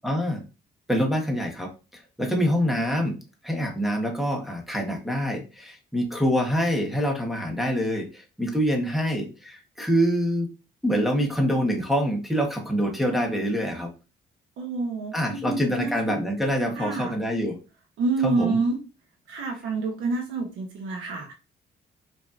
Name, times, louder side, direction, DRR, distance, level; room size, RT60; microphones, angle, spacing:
voice 1, 0.0-0.4 0.9-3.2 3.4-10.5 10.8-13.9 15.1-17.6 18.2-18.6, equal, ahead, 0 dB, 1.1 m, -25 dB
voice 2, 14.6-16.2 16.7-17.1 18.0-18.8 19.3-21.3, right 4 dB, 85° right, 1 dB, 0.9 m, -28 dB
4.8 x 2.7 x 2.4 m, 0.31 s
cardioid pair, 90°, 20 cm